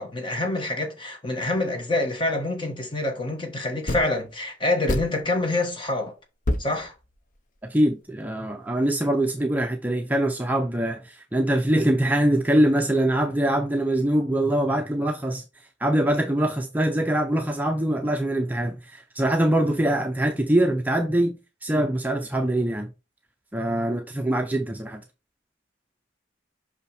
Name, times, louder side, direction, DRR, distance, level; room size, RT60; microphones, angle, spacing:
voice 1, 0.0-6.1 6.6-6.9, left 2 dB, 25° left, 1.2 m, -26 dB
sound 1, 1.7-1.8 3.9-4.3 4.9-5.5 6.0-6.1 6.4-7.7, left 1 dB, 45° left, 0.7 m, -28 dB
voice 2, 7.6-15.4 15.8-22.9 23.5-25.0, right 1 dB, 10° right, 0.5 m, -23 dB
5.6 x 5.5 x 3.4 m
head